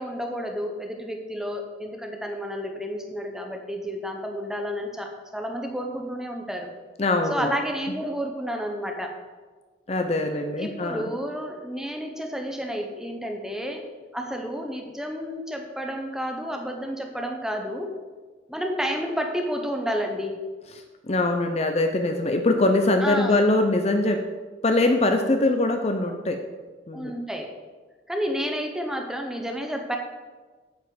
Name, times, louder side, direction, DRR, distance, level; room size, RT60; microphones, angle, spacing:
voice 1, 0.0-6.7 7.3-9.1 10.6-13.8 14.1-17.9 18.5-20.3 23.0-23.5 26.9-27.5 28.1-30.0, equal, 5° right, 2 dB, 1.0 m, -30 dB
voice 2, 7.0-7.5 9.9-11.1 21.1-24.2 24.6-26.4 26.9-27.1, left 2 dB, 35° left, 5 dB, 0.6 m, -22 dB
8.9 x 5.4 x 7.8 m, 1.4 s
head